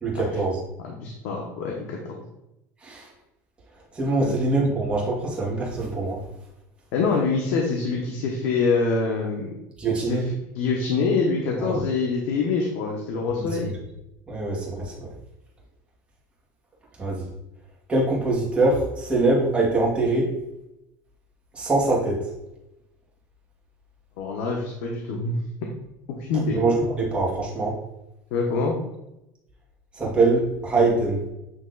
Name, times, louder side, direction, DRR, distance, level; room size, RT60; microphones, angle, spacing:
voice 1, 0.0-0.6 2.8-3.1 3.9-6.2 9.8-10.3 11.6-11.8 13.4-13.5 14.3-15.1 17.0-17.3 17.9-20.4 21.5-22.3 26.5-27.8 29.9-31.3, right 2 dB, 15° right, -4 dB, 1.8 m, -23 dB
voice 2, 0.8-2.2 4.2-4.3 6.9-9.5 9.9-10.2 10.5-13.7 24.2-25.4 26.3-26.6 28.3-28.7, left 4 dB, 80° left, 0 dB, 1.2 m, -25 dB
8.4 x 3.2 x 3.9 m, 0.89 s
cardioid pair, 155°, 8 cm